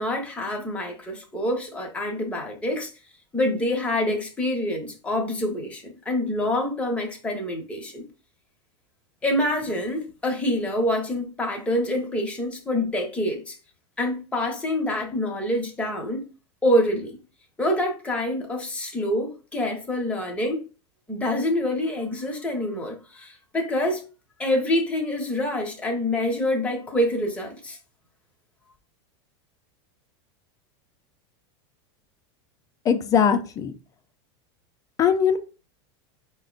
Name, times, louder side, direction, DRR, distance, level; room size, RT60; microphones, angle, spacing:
voice 1, 0.0-2.9 3.3-8.0 9.2-13.5 14.0-16.2 16.6-17.2 17.6-20.7 21.1-24.0 24.4-27.8, left 1 dB, 10° left, 1.0 m, -26 dB
voice 2, 32.9-33.7 35.0-35.4, left 7 dB, 25° left, 0.5 m, -20 dB
5.3 x 2.1 x 3.9 m
supercardioid pair, 145°, 14 cm